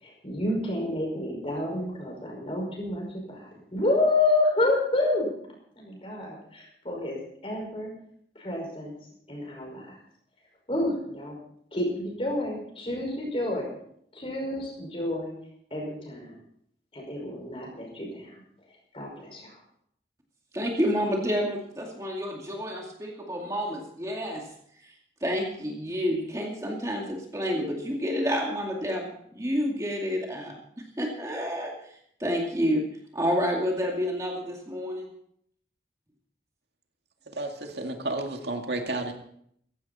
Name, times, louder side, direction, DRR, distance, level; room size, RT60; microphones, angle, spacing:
voice 1, 0.0-5.3 5.8-7.2 7.4-7.9 8.4-8.9 9.3-10.0 10.7-11.4 11.7-13.7 14.1-15.3 15.7-16.3 16.9-18.4 18.9-19.6, left 2 dB, 30° left, 0 dB, 5.5 m, -29 dB
voice 2, 20.5-24.4 25.2-29.1 29.3-30.6 31.0-31.7 32.2-32.8 33.1-35.1, equal, 20° right, 0 dB, 2.3 m, -29 dB
voice 3, 37.3-39.1, right 2 dB, 75° right, 3 dB, 2.2 m, -31 dB
16.5 x 15.5 x 4.3 m, 0.69 s
head